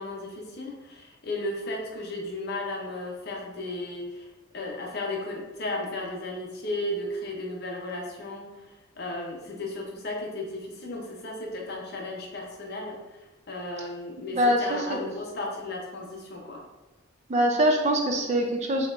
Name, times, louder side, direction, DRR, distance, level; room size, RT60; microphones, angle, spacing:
voice 1, 0.0-4.3 4.5-16.6, left 2 dB, 50° left, -1 dB, 0.7 m, -35 dB
voice 2, 14.2-15.0 17.3-18.9, equal, 35° right, 2 dB, 0.4 m, -24 dB
4.4 x 2.9 x 2.5 m, 1.1 s
head